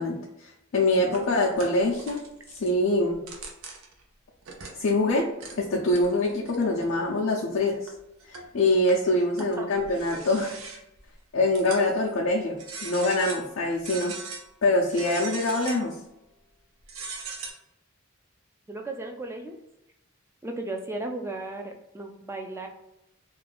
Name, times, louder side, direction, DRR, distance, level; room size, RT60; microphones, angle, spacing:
voice 1, 0.0-2.2 2.5-3.2 4.8-5.3 5.6-7.9 8.3-10.6 11.3-12.6 12.8-14.1 14.6-15.9, left 2 dB, 70° left, -3 dB, 0.4 m, -24 dB
sound 1, 0.9-2.7 3.1-4.0 4.4-5.1 5.4-5.6 5.9-6.9 7.4-7.5 7.9-8.5 8.9-11.0 11.5-12.1 12.6-13.5 13.8-14.4 14.9-16.0 16.8-17.5, right 4 dB, 90° right, 0.6 m, -40 dB
voice 2, 1.0-1.3 9.6-9.7 18.7-19.6 20.4-22.7, right 2 dB, 10° right, 3 dB, 0.3 m, -35 dB
2.5 x 2.3 x 3.3 m, 0.85 s
head